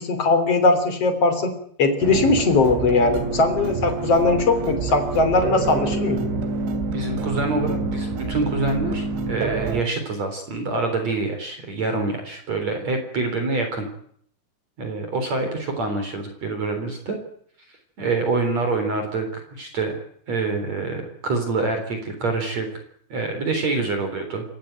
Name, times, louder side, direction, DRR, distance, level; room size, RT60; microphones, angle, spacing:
voice 1, 0.0-6.3, left 3 dB, 35° left, 9 dB, 3.8 m, -20 dB
sound 1, 2.0-9.8, right 3 dB, 85° right, 5.0 m, -27 dB
voice 2, 6.9-13.9 14.8-17.2 18.0-19.9 20.3-22.7 23.1-24.4, right 3 dB, 40° right, 5 dB, 4.7 m, -26 dB
28.0 x 16.0 x 9.1 m, 0.64 s
omnidirectional pair, 5.2 m